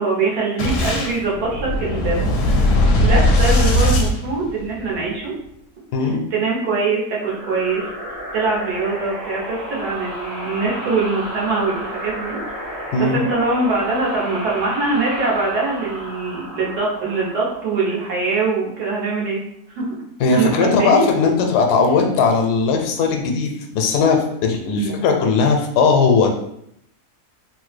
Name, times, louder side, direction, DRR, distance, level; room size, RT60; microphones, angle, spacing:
voice 1, 0.0-2.2 2.6-2.7 3.0-5.3 6.3-7.9 8.3-12.4 13.0-19.4 19.7-19.9 20.3-21.0 24.7-25.0, right 3 dB, 80° right, -4 dB, 1.4 m, -23 dB
Boom, 0.6-5.0, left 1 dB, 70° left, 0.8 m, -18 dB
voice 2, 5.9-6.2 12.9-13.2 20.2-26.3, left 4 dB, 85° left, 4 dB, 1.1 m, -18 dB
sound 1, 7.2-18.5, equal, 35° right, 0.7 m, -32 dB
3.2 x 2.0 x 3.1 m, 0.74 s
omnidirectional pair, 1.7 m